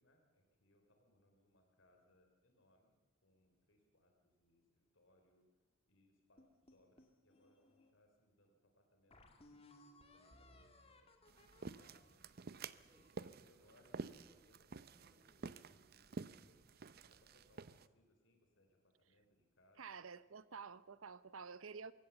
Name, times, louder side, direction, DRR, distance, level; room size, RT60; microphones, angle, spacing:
voice 1, 0.0-3.0 3.2-5.5 5.9-6.4 6.7-11.1 11.5-12.6 12.9-16.7 17.1-20.0, left 1 dB, 70° left, 4 dB, 3.5 m, -73 dB
sound 1, 6.4-7.9 8.5-8.6 9.1-13.3, left 1 dB, 30° left, 2.2 m, -65 dB
sound 2, 11.3-17.9, right 4 dB, 50° right, 0.6 m, -51 dB
sound 3, 12.9-13.2 13.5-14.5 14.9-15.8 16.4-17.9, equal, 10° right, 4.3 m, -75 dB
voice 2, 19.8-21.9, right 5 dB, 90° right, 16 dB, 0.8 m, -50 dB
22.5 x 17.5 x 7.2 m, 1.2 s
head